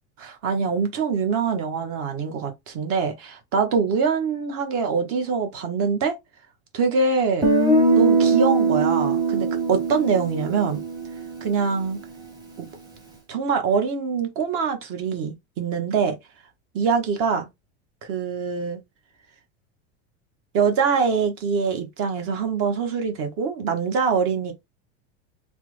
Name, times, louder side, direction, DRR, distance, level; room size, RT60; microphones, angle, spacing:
voice 1, 0.2-6.2 6.7-7.5 8.0-10.8 11.4-12.0 12.6-12.7 13.3-16.2 16.7-17.5 18.0-18.8 20.5-24.5, right 5 dB, 45° right, 0.8 m, -24 dB
Guitar, 7.4-11.4, right 3 dB, 10° right, 0.9 m, -21 dB
3.3 x 2.1 x 3.1 m
supercardioid pair, 140°, 33 cm